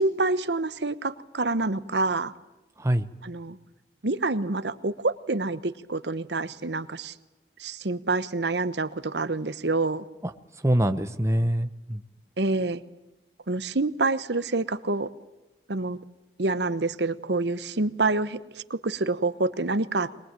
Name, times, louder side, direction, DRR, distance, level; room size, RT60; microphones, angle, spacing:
voice 1, 0.0-2.3 3.2-3.6 4.0-7.1 7.6-10.0 12.4-12.8 13.5-15.1 15.7-16.0 16.4-18.4 18.7-20.1, right 3 dB, 75° right, 14 dB, 1.1 m, -27 dB
voice 2, 2.8-3.1 10.2-12.0, right 1 dB, 15° right, 10 dB, 0.9 m, -25 dB
22.5 x 21.5 x 9.0 m, 1.0 s
head